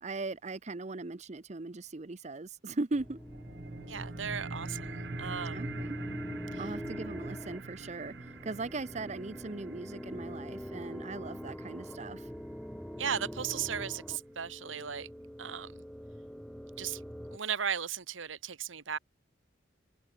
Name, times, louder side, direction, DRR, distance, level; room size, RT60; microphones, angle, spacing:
voice 1, 0.0-3.2 5.5-6.0 6.6-8.1 8.4-12.3, right 3 dB, 35° right, 0.7 m, -39 dB
sound 1, 2.9-17.4, equal, 5° left, 1.1 m, -43 dB
sound 2, 3.0-14.0, right 3 dB, 60° right, 1.0 m, -46 dB
voice 2, 3.9-5.7 6.5-6.7 13.0-15.1 15.4-15.8 16.8-17.0 17.3-19.0, right 7 dB, 80° right, 1.2 m, -36 dB
head